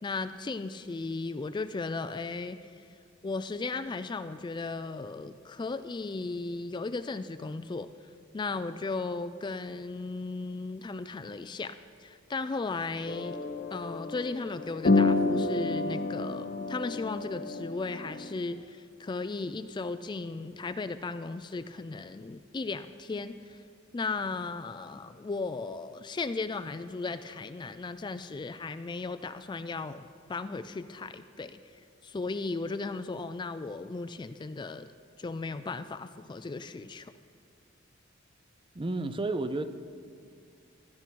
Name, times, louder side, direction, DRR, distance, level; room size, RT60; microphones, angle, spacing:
voice 1, 0.0-2.9 3.2-7.9 8.3-13.4 13.7-23.6 23.9-31.6 32.0-34.9 35.2-37.1, left 3 dB, 20° left, 11 dB, 0.3 m, -36 dB
sound 1, 13.1-18.5, left 3 dB, 40° left, 0.8 m, -29 dB
voice 2, 38.7-39.7, right 2 dB, 25° right, 11 dB, 0.5 m, -31 dB
16.0 x 12.0 x 4.6 m, 2.4 s
head